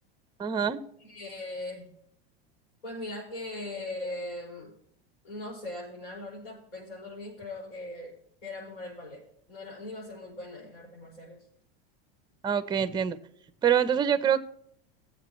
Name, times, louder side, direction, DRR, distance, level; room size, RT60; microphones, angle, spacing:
voice 1, 0.4-0.8 12.4-13.2 13.6-14.4, right 8 dB, 15° right, 14 dB, 0.6 m, -25 dB
voice 2, 1.0-1.9 2.8-4.7 5.2-8.1 8.4-11.4, left 2 dB, 85° left, -6 dB, 5.3 m, -40 dB
19.0 x 7.7 x 3.1 m, 0.69 s
supercardioid pair, 115°, 29 cm